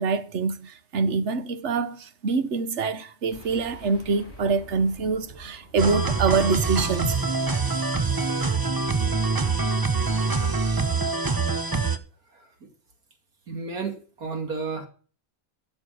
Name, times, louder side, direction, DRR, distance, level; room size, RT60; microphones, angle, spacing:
voice 1, 0.0-7.2, right 4 dB, 55° right, 1.2 m, -25 dB
sound 1, 3.3-7.3, left 1 dB, 40° left, 4.5 m, -47 dB
sound 2, 5.8-12.0, right 4 dB, 20° right, 0.6 m, -25 dB
voice 2, 13.5-14.9, right 4 dB, 75° right, 2.8 m, -32 dB
12.0 x 7.0 x 6.2 m
omnidirectional pair, 1.5 m